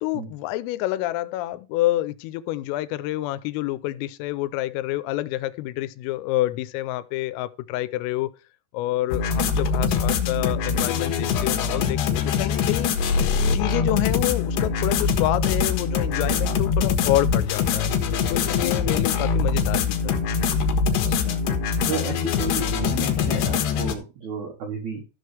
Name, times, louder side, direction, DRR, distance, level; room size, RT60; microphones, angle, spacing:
voice 1, 0.0-8.3 8.7-13.0 13.5-17.9 18.3-20.2, left 15 dB, 90° left, 3.3 m, -28 dB
sound 1, 9.1-24.0, left 6 dB, 70° left, 2.9 m, -23 dB
voice 2, 20.9-21.4 21.9-25.0, right 5 dB, 90° right, 1.6 m, -33 dB
14.0 x 6.5 x 3.3 m
omnidirectional pair, 5.9 m